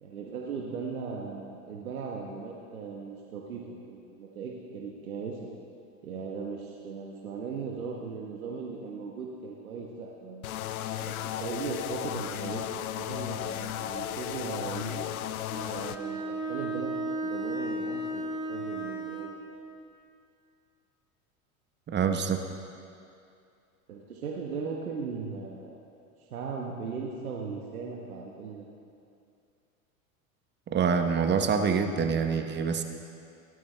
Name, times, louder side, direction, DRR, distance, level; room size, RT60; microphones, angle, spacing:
voice 1, 0.0-5.5 6.0-10.5 11.0-15.1 15.6-16.9 17.2-19.3 23.9-25.8 26.2-28.6, right 5 dB, 85° right, -1 dB, 1.4 m, -38 dB
sound 1, 10.4-16.0, left 11 dB, 85° left, 0.6 m, -35 dB
Bowed string instrument, 15.5-19.4, right 1 dB, 10° right, 1.8 m, -34 dB
voice 2, 21.9-22.4 30.7-32.8, right 6 dB, 25° right, 6 dB, 1.0 m, -26 dB
17.0 x 12.5 x 3.4 m, 2.5 s
hypercardioid pair, 95°, 42 cm